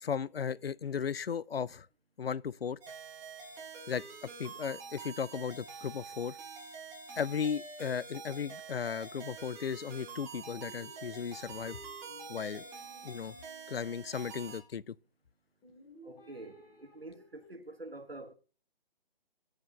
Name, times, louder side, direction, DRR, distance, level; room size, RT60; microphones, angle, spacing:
voice 1, 0.0-1.9 2.2-2.8 3.9-6.4 7.2-11.8 12.3-12.6 13.0-13.4 13.7-15.0, left 7 dB, 85° left, 0.5 m, -36 dB
sound 1, 2.8-14.6, right 5 dB, 10° right, 0.8 m, -47 dB
sound 2, 10.4-14.6 15.6-17.5, left 1 dB, 15° left, 1.8 m, -58 dB
voice 2, 16.0-18.3, right 2 dB, 85° right, 1.4 m, -47 dB
8.6 x 4.8 x 7.1 m
figure-of-eight pair, 140°, 29 cm